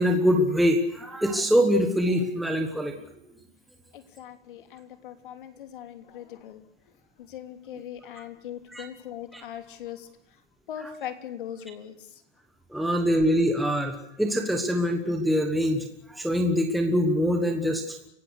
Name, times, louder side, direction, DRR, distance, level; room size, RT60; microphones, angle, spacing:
voice 1, 0.0-2.9 7.7-7.8 8.7-8.8 9.3-9.4 12.7-15.8 16.1-18.0, equal, ahead, 3 dB, 1.3 m, -24 dB
voice 2, 3.9-6.6 7.2-10.1 10.7-11.9, left 10 dB, 50° left, 8 dB, 3.2 m, -40 dB
29.5 x 17.0 x 6.5 m, 0.78 s
hypercardioid pair, 175°, 34 cm